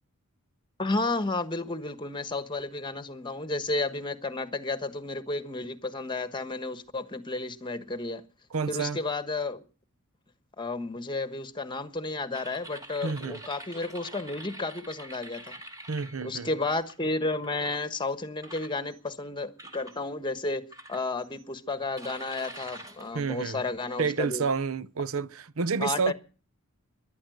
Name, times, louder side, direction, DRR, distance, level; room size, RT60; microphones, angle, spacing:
voice 1, 0.8-8.2 8.7-9.6 10.6-15.6 16.2-20.6 20.9-24.4 25.8-26.1, left 2 dB, 20° left, 1.3 m, -32 dB
voice 2, 8.5-9.0 13.0-13.4 15.9-16.5 23.1-23.6 24.0-26.1, right 5 dB, 70° right, 0.7 m, -29 dB
sound 1, 12.3-16.9 17.4-17.8 18.4-19.1 19.6-20.0 20.7-21.4 22.0-24.3, right 1 dB, 15° right, 2.4 m, -46 dB
14.0 x 11.5 x 7.8 m
head